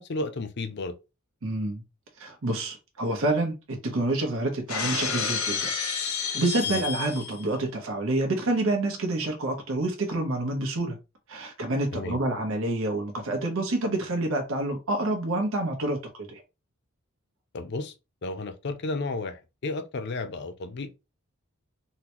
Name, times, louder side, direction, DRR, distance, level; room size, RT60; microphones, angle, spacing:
voice 1, 0.1-0.9 6.7-6.8 11.9-12.2 17.5-17.9 18.2-20.9, left 2 dB, 55° left, 0.5 m, -33 dB
voice 2, 1.4-1.8 2.2-5.7 6.2-11.0 11.3-16.4, right 2 dB, 70° right, 0.9 m, -28 dB
Shatter, 4.7-7.5, left 6 dB, 85° left, 0.9 m, -30 dB
3.8 x 2.2 x 2.9 m
head